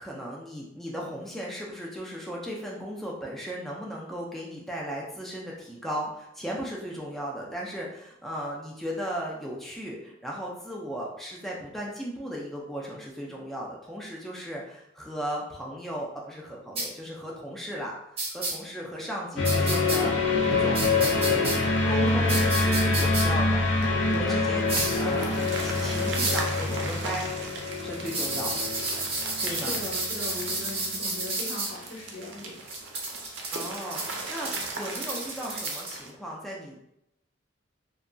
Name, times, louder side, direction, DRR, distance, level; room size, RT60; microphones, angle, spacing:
voice 1, 0.0-17.9 18.3-21.6 21.9-27.2 27.8-28.6 29.4-29.8 33.5-36.8, equal, ahead, -4 dB, 0.3 m, -36 dB
sound 1, 16.8-16.9 18.2-18.5 19.4-20.0 20.7-21.6 22.3-23.2 24.7-25.0 26.1-26.5 28.1-31.7 32.7-36.0, right 2 dB, 30° right, 0.8 m, -31 dB
sound 2, 19.4-30.7, left 3 dB, 65° left, 0.5 m, -26 dB
sound 3, 24.6-36.1, right 3 dB, 65° right, 0.5 m, -39 dB
voice 2, 29.4-32.6, left 2 dB, 85° left, -5 dB, 1.0 m, -39 dB
2.7 x 2.2 x 2.5 m, 0.81 s
head